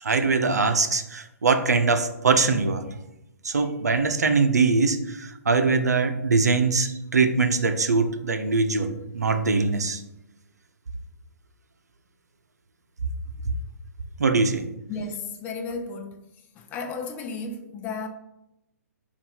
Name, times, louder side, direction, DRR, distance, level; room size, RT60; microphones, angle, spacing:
voice 1, 0.0-2.8 3.4-10.0 14.2-14.6, right 4 dB, 70° right, 0.8 m, -22 dB
voice 2, 14.9-16.3 16.5-18.1, left 4 dB, 20° left, 0.6 m, -33 dB
6.8 x 2.7 x 5.5 m
figure-of-eight pair, 125°, 9 cm